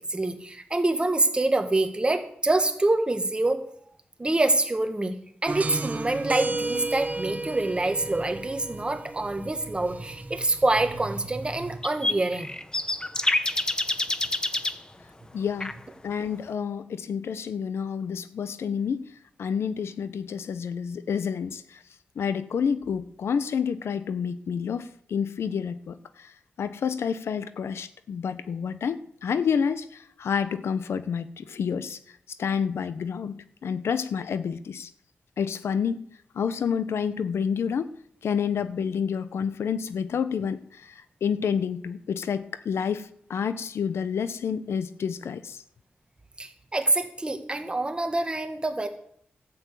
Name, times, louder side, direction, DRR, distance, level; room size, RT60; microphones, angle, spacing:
voice 1, 0.1-3.6 4.2-5.1 5.4-12.5 46.4-48.9, right 2 dB, 25° right, 7 dB, 1.6 m, -26 dB
sound 1, 5.5-11.7, right 2 dB, 40° right, 1.2 m, -34 dB
sound 2, 11.8-14.8 15.6-15.7, left 2 dB, 20° left, 0.8 m, -27 dB
voice 2, 15.3-15.7 16.0-19.1 19.4-21.8 22.2-26.3 26.6-32.0 32.4-34.9 35.4-37.9 38.2-45.6, left 7 dB, 85° left, 13 dB, 0.7 m, -29 dB
13.0 x 7.0 x 8.2 m, 0.66 s
wide cardioid pair, 95°, 4 cm